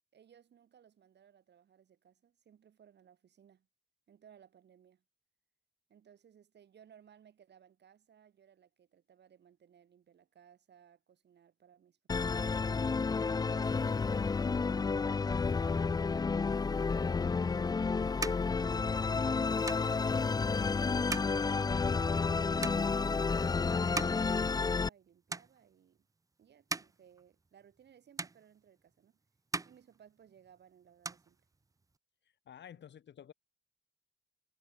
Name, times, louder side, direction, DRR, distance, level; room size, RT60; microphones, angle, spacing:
voice 1, 0.1-3.7 4.1-5.0 5.9-12.6 13.4-21.1 21.4-26.1 26.4-29.2 29.6-31.4 32.7-32.8, right 8 dB, 75° right, 7.2 m, -62 dB
Musical instrument, 12.1-24.9, left 4 dB, 20° left, 0.4 m, -31 dB
sound 1, 17.3-25.0 25.3-26.0 26.4-27.9 28.2-29.1 29.4-30.6 30.8-32.0, right 3 dB, 20° right, 0.6 m, -43 dB
voice 2, 32.5-33.3, left 9 dB, 85° left, 3.9 m, -51 dB
wide cardioid pair, 165°, 18 cm